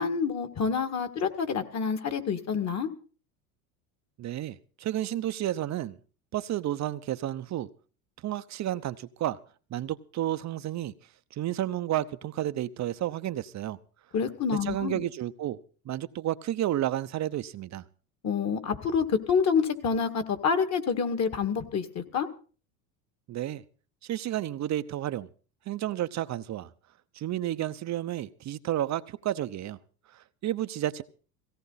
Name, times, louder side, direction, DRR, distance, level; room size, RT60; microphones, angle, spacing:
voice 1, 0.0-2.9 14.1-15.0 18.2-22.3, left 6 dB, 35° left, 2.2 m, -27 dB
voice 2, 4.2-6.0 6.3-7.7 8.2-9.4 9.7-10.9 11.3-13.8 14.7-15.6 15.8-17.8 23.3-23.6 24.0-25.3 25.7-26.7 27.1-29.8 30.1-31.0, right 13 dB, 40° right, 0.8 m, -31 dB
17.0 x 17.0 x 4.1 m
supercardioid pair, 95°, 44 cm